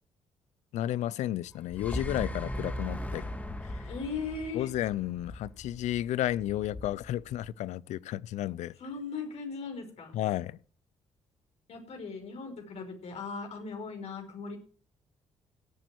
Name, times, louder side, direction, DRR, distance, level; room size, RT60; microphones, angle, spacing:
voice 1, 0.7-3.2 3.7-3.9 4.5-8.7 10.1-10.6, left 13 dB, 85° left, 0.6 m, -32 dB
sound 1, 1.5-7.5, left 3 dB, 45° left, 5.8 m, -46 dB
sound 2, 1.5-5.7, equal, 10° left, 2.1 m, -38 dB
voice 2, 3.8-4.7 8.8-10.2 11.7-14.6, left 4 dB, 65° left, 5.4 m, -38 dB
16.5 x 9.3 x 4.6 m
cardioid pair, 75°, 12 cm